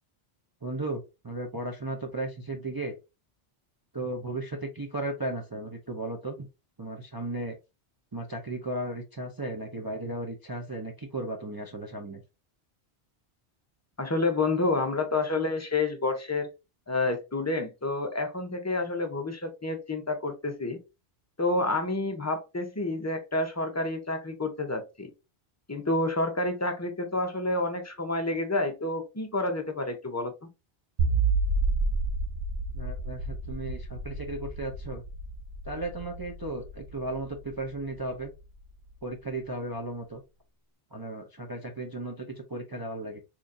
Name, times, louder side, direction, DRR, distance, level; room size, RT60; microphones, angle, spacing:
voice 1, 0.6-3.0 3.9-6.5 6.8-7.6 8.1-12.2 32.7-35.0 35.6-38.3 39.0-40.2 40.9-43.2, right 2 dB, 30° right, 1 dB, 0.5 m, -35 dB
voice 2, 14.0-16.5 16.9-20.8 21.4-25.1 25.7-30.5, left 2 dB, 20° left, 4 dB, 0.6 m, -29 dB
sound 1, 31.0-38.2, right 3 dB, 60° right, 0.7 m, -30 dB
4.0 x 3.0 x 2.5 m, 0.26 s
omnidirectional pair, 1.1 m